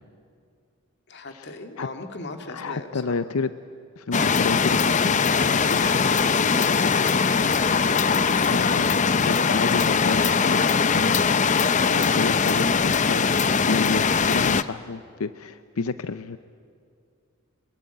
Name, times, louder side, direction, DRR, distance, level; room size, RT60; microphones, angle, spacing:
voice 1, 1.1-3.2 5.7-7.8 8.7-8.8, left 2 dB, 55° left, 6 dB, 2.1 m, -39 dB
voice 2, 2.5-3.5 4.0-5.2 5.5-6.0 8.5-13.4 13.7-16.4, left 4 dB, 90° left, 12 dB, 0.6 m, -31 dB
sound 1, 4.1-14.6, left 5 dB, 35° left, 0.6 m, -21 dB
25.0 x 22.5 x 9.1 m, 2.3 s
head